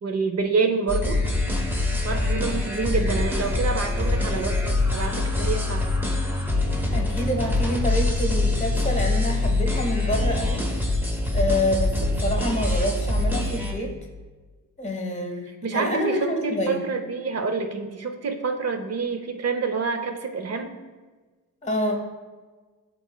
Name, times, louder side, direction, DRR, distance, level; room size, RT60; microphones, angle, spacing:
voice 1, 0.0-1.2 2.0-5.9 15.6-20.8, right 4 dB, 45° right, 6 dB, 0.6 m, -27 dB
sound 1, 0.9-13.7, left 2 dB, 5° right, 0.8 m, -24 dB
voice 2, 6.9-10.7 11.3-13.9 14.8-16.9 21.6-22.0, left 1 dB, 20° left, 2 dB, 1.0 m, -27 dB
11.5 x 3.8 x 2.2 m, 1.3 s
wide cardioid pair, 135°, 34 cm